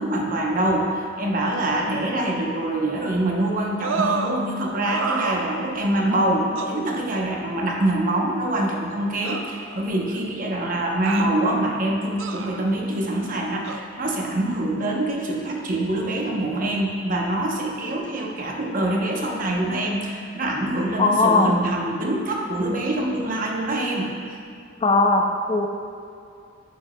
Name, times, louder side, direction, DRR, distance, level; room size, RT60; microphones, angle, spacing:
voice 1, 0.0-24.2, right 1 dB, 45° right, 0 dB, 0.8 m, -25 dB
sound 1, 3.8-4.4 4.9-5.9 6.6-6.8 7.9-8.0 9.2-10.1 11.0-11.3 12.2-12.7 13.6-13.8, right 4 dB, 85° right, 0.4 m, -29 dB
voice 2, 21.0-21.5 24.8-25.7, left 3 dB, 30° left, 4 dB, 0.4 m, -19 dB
10.5 x 5.3 x 2.2 m, 2.5 s
head